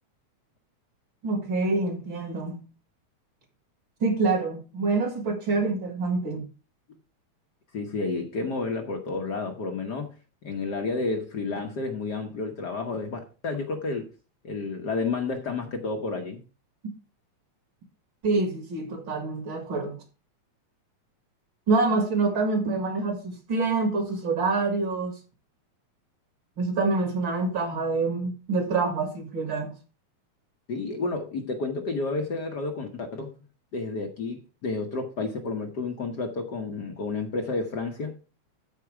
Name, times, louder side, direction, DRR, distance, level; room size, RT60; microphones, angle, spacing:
voice 1, 1.2-2.6 4.0-6.4 18.2-20.0 21.7-25.2 26.6-29.7, right 3 dB, 45° right, 2.4 m, -26 dB
voice 2, 7.7-10.1 10.4-14.1 14.4-16.4 30.7-33.3 33.7-38.2, left 3 dB, 55° left, 1.1 m, -31 dB
13.0 x 4.8 x 4.8 m
omnidirectional pair, 3.3 m